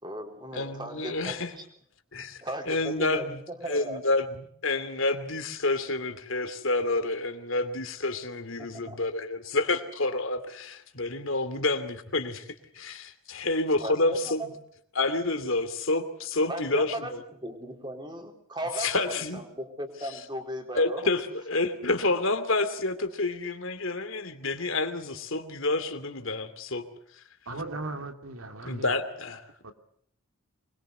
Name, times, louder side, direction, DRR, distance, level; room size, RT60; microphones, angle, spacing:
voice 1, 0.0-1.6 2.4-4.0 8.6-9.0 13.8-14.5 16.5-17.1 17.4-21.1, right 1 dB, 20° right, 4.1 m, -37 dB
voice 2, 0.5-1.5 2.1-2.4 2.7-3.4 3.7-12.5 12.7-14.5 14.9-17.2 18.8-19.4 20.7-26.8 28.6-29.4, left 2 dB, 65° left, 2.6 m, -29 dB
voice 3, 27.5-28.9 29.6-29.7, right 2 dB, 75° right, 2.7 m, -37 dB
25.0 x 22.0 x 7.9 m
head